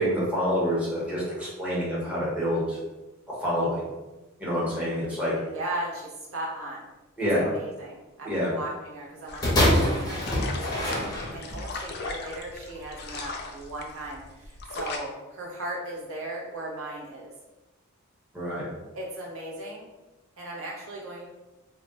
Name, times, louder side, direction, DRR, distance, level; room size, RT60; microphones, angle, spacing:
voice 1, 0.0-2.8 3.4-3.8 4.4-5.3 7.2-7.5 8.2-8.5 18.3-18.6, equal, 5° right, -8 dB, 0.9 m, -27 dB
voice 2, 5.5-6.9 7.3-17.3 18.9-19.9 20.4-21.3, right 1 dB, 65° right, -3 dB, 0.7 m, -37 dB
sound 1, 9.3-15.0, left 4 dB, 50° left, 0.3 m, -39 dB
sound 2, 9.4-11.7 12.5-12.6, left 1 dB, 20° left, 0.6 m, -24 dB
2.2 x 2.1 x 3.9 m, 1.1 s
head